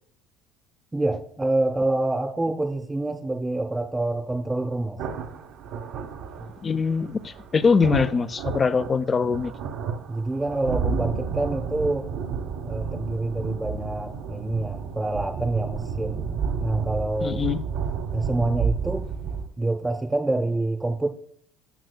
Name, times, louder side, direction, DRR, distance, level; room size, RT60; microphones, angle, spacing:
voice 1, 0.9-5.0 6.4-6.5 10.1-12.1 12.6-16.3 16.6-17.4 18.1-19.1 19.6-21.1, right 2 dB, 15° right, 0.7 m, -27 dB
sound 1, 5.0-19.5, right 6 dB, 65° right, 0.9 m, -31 dB
voice 2, 6.6-9.5 17.2-17.6, left 5 dB, 30° left, 0.5 m, -23 dB
13.0 x 6.0 x 2.2 m
hypercardioid pair, 80°, 0 cm